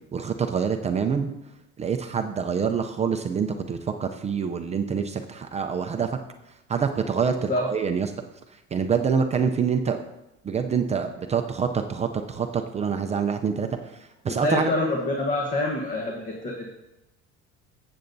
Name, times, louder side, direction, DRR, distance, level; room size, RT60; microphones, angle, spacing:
voice 1, 0.1-1.3 1.8-6.1 6.7-8.1 8.7-10.0 10.4-13.7 13.9-14.7, right 6 dB, 20° right, 5 dB, 0.4 m, -26 dB
voice 2, 7.3-7.7 14.3-16.7, left 2 dB, 25° left, 0 dB, 1.1 m, -26 dB
14.0 x 7.9 x 2.6 m, 0.95 s
cardioid pair, 145°, 30 cm